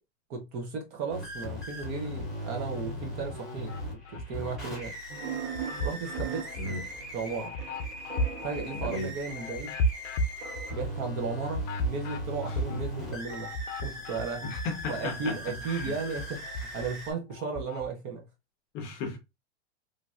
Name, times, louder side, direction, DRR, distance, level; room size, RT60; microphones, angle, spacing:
voice 1, 0.3-3.8 4.1-4.9 5.8-6.8 7.1-7.6 8.4-9.8 10.7-14.5 14.9-18.2, right 4 dB, 30° right, 0.6 m, -35 dB
sound 1, 1.1-17.1, equal, ahead, 1.1 m, -39 dB
sound 2, 2.0-2.9 3.3-4.9 5.3-15.0 15.3-17.9, equal, 90° left, 0.6 m, -36 dB
sound 3, 5.1-9.6 10.4-11.9, right 7 dB, 85° right, 1.6 m, -41 dB
voice 2, 8.7-9.1 12.5-12.8 14.4-15.9 18.7-19.2, left 3 dB, 30° left, 0.6 m, -36 dB
3.1 x 2.5 x 2.3 m
supercardioid pair, 155°, 35 cm